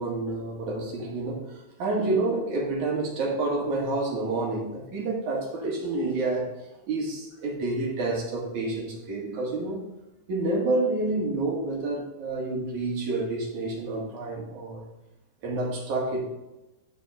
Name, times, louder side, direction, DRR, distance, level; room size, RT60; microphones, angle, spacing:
voice 1, 0.0-6.5 6.9-9.8 10.3-14.9 15.4-16.2, right 2 dB, 55° right, -2 dB, 3.0 m, -29 dB
12.5 x 5.0 x 3.7 m, 0.99 s
omnidirectional pair, 4.6 m